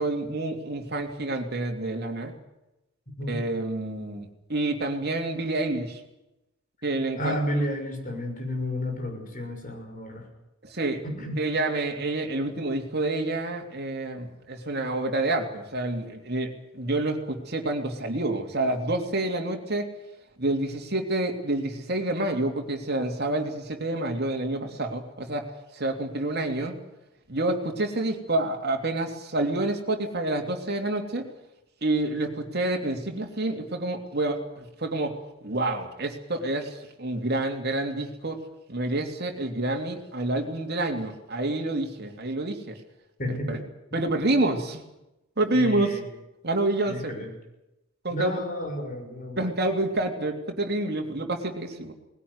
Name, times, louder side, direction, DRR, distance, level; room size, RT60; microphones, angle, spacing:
voice 1, 0.0-2.3 3.3-6.0 6.8-7.4 10.6-11.0 11.4-19.9 20.4-25.5 25.7-26.8 27.3-31.3 31.8-38.4 38.7-42.8 43.3-43.6 43.9-44.8 45.4-46.0 46.4-47.1 48.0-48.4 49.4-51.9, right 2 dB, 50° right, 3 dB, 3.1 m, -28 dB
voice 2, 7.2-10.2 11.0-11.4 43.2-43.5 43.9-44.0 45.5-46.0 46.9-47.3 48.1-49.5, left 1 dB, 40° left, 3 dB, 6.2 m, -31 dB
20.0 x 17.0 x 9.7 m, 0.92 s
head